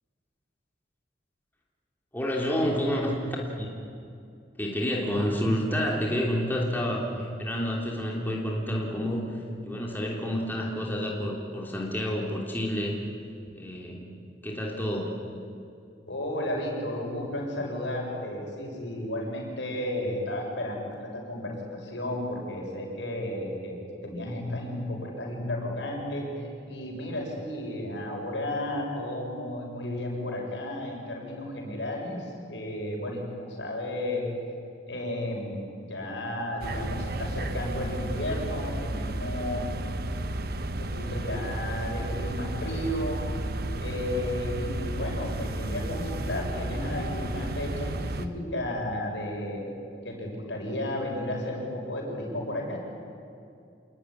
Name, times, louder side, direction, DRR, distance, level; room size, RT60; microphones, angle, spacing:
voice 1, 2.1-3.7 4.6-13.0 13.5-14.1 14.4-15.2, equal, 10° left, -2 dB, 3.2 m, -29 dB
voice 2, 16.1-34.3 34.8-35.6 35.9-39.8 40.8-43.2 43.8-52.8, left 1 dB, 75° left, 0 dB, 7.0 m, -33 dB
sound 1, 36.6-48.3, right 1 dB, 55° right, 1.2 m, -32 dB
27.5 x 20.5 x 10.0 m, 2.5 s
head